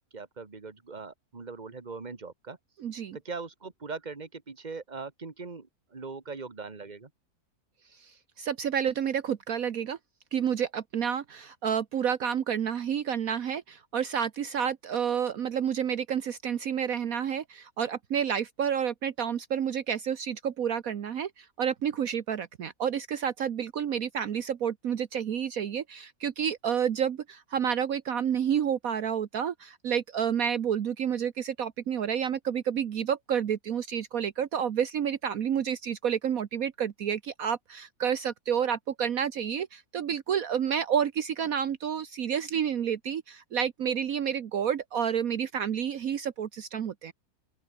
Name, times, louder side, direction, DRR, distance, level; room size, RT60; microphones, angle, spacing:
voice 1, 0.1-2.6 3.1-7.1, right 4 dB, 30° right, 2.0 m, -40 dB
voice 2, 2.8-3.2 8.0-10.0 10.3-47.1, right 8 dB, 65° right, 1.4 m, -30 dB
open air
omnidirectional pair, 1.6 m